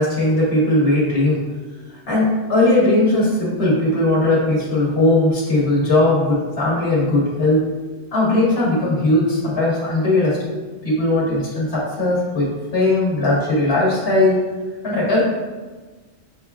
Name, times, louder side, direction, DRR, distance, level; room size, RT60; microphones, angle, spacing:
voice 1, 0.0-1.4 2.1-7.6 8.1-10.5 10.8-14.4 14.8-15.2, left 2 dB, 50° left, -6 dB, 1.4 m, -18 dB
6.7 x 2.3 x 2.4 m, 1.3 s
omnidirectional pair, 1.4 m